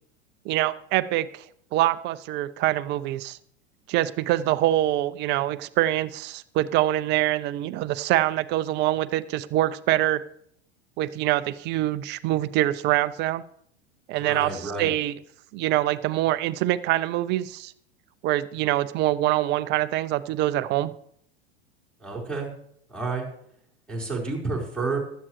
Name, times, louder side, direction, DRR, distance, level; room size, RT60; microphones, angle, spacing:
voice 1, 0.4-1.5 1.7-3.4 3.9-10.2 11.0-13.4 14.1-15.1 15.5-17.7 18.2-20.9, right 15 dB, 30° right, 15 dB, 0.5 m, -24 dB
voice 2, 14.1-14.9 22.0-22.5 22.9-23.3 23.9-25.0, right 3 dB, 5° left, -6 dB, 4.6 m, -30 dB
15.5 x 12.5 x 3.2 m, 0.68 s
figure-of-eight pair, 90°, 35 cm